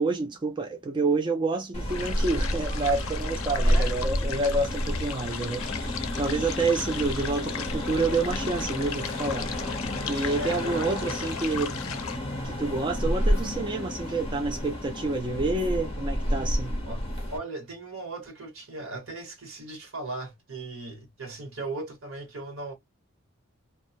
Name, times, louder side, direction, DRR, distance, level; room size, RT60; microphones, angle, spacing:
voice 1, 0.0-9.5 10.1-11.9 12.4-16.8, right 3 dB, 20° right, 0.3 m, -28 dB
sound 1, 1.7-17.4, equal, 30° left, 0.7 m, -30 dB
sound 2, 1.9-12.2, left 8 dB, 80° left, 0.4 m, -38 dB
voice 2, 3.6-3.9 10.2-10.9 16.9-17.0 17.3-22.7, right 2 dB, 75° right, 1.1 m, -37 dB
2.2 x 2.0 x 2.7 m
head